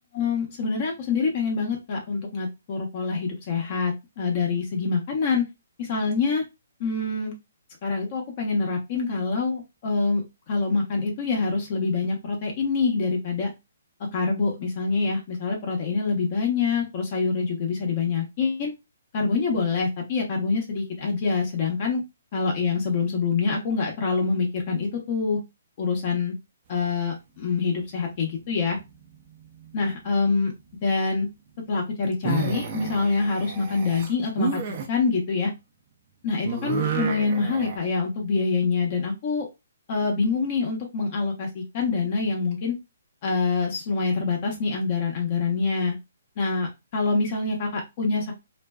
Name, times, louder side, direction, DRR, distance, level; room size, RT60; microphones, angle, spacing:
voice 1, 0.1-5.4 5.8-6.4 6.8-7.3 7.8-13.5 14.1-18.7 19.1-22.0 22.3-25.4 25.8-26.3 26.7-28.8 29.7-30.5 30.8-31.3 31.7-34.6 34.9-35.5 36.2-39.5 39.9-42.7 43.2-45.9 46.4-48.3, left 4 dB, 40° left, 1 dB, 0.8 m, -25 dB
sound 1, 28.4-29.2 29.4-29.9 32.1-34.9 36.4-37.8, right 6 dB, 40° right, 0.5 m, -30 dB
2.5 x 2.2 x 2.2 m, 0.23 s
figure-of-eight pair, 135°, 0 cm